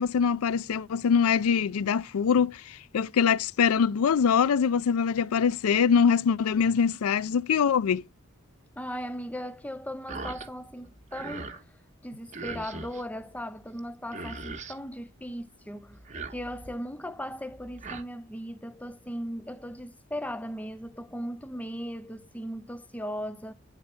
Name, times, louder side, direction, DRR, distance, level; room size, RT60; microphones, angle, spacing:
voice 1, 0.0-8.0, left 6 dB, 85° left, 0.4 m, -23 dB
voice 2, 8.8-11.6 12.0-16.0 16.3-23.5, equal, 5° left, 0.5 m, -37 dB
sound 1, 10.1-10.5 10.8-11.6 12.3-13.0 13.8-13.9 14.1-14.8 15.9-16.8 17.5-18.0, right 3 dB, 35° right, 0.9 m, -39 dB
9.7 x 4.1 x 4.3 m
head